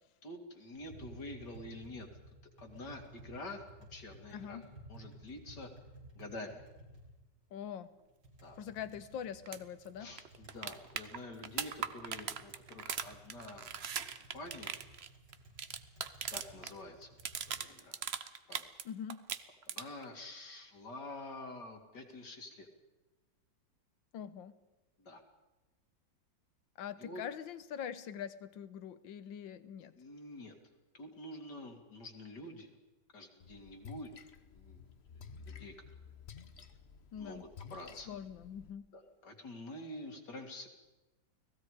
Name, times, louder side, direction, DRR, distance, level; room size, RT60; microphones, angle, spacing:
voice 1, 0.2-2.1 2.6-3.6 3.9-4.6 4.9-5.7 6.2-6.6 8.4-8.6 10.0-13.7 14.2-14.8 16.3-17.2 17.5-18.0 18.5-18.6 19.7-22.7 25.0-25.2 27.0-27.2 30.0-30.6 30.9-32.7 33.1-34.1 34.5-34.8 35.1-35.7 37.2-38.1 38.9-40.7, left 1 dB, 65° left, 4 dB, 3.0 m, -47 dB
Tap, 0.7-17.6, right 1 dB, 65° right, 6.3 m, -56 dB
voice 2, 4.3-4.7 7.5-8.0 8.6-10.1 18.9-19.3 24.1-24.6 26.8-29.9 37.1-37.4 38.1-38.9, left 8 dB, 90° left, 14 dB, 1.7 m, -43 dB
sound 1, 9.5-9.6 9.9-10.0 10.2-16.7 17.0-18.8 19.1-20.1 22.1-22.2, right 7 dB, 45° right, 0.9 m, -40 dB
Splash splatter, 33.4-38.7, left 6 dB, 40° left, 1.1 m, -53 dB
30.0 x 19.5 x 5.0 m, 1.1 s
omnidirectional pair, 2.0 m